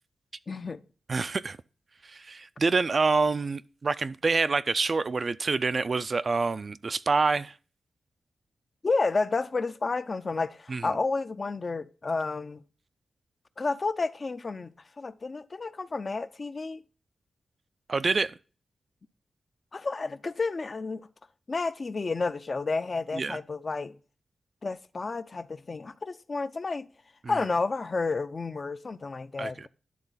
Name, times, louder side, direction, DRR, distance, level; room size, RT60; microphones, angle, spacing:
voice 1, 0.5-0.8 8.8-12.6 13.6-16.8 19.7-21.1 21.5-24.0 24.6-26.9 27.3-29.7, left 3 dB, 35° left, 0.4 m, -31 dB
voice 2, 1.1-1.6 2.0-7.5 10.7-10.9 17.9-18.4 23.1-23.4 27.2-27.3 29.4-29.7, right 4 dB, 40° right, 0.3 m, -27 dB
11.0 x 3.8 x 3.9 m
wide cardioid pair, 135°, 0 cm